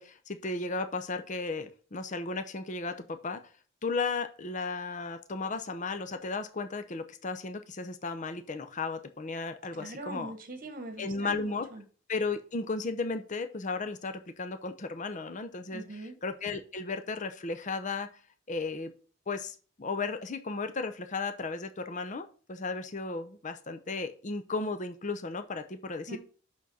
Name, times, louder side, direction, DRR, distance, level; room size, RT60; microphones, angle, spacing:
voice 1, 0.0-3.4 3.8-10.3 11.0-11.7 12.1-15.8 16.2-18.1 18.5-18.9 19.3-26.2, left 3 dB, 40° left, 9 dB, 0.7 m, -35 dB
voice 2, 9.8-11.8 15.7-16.2 26.1-26.2, right 2 dB, 45° right, 8 dB, 1.5 m, -42 dB
6.2 x 6.0 x 5.5 m, 0.39 s
head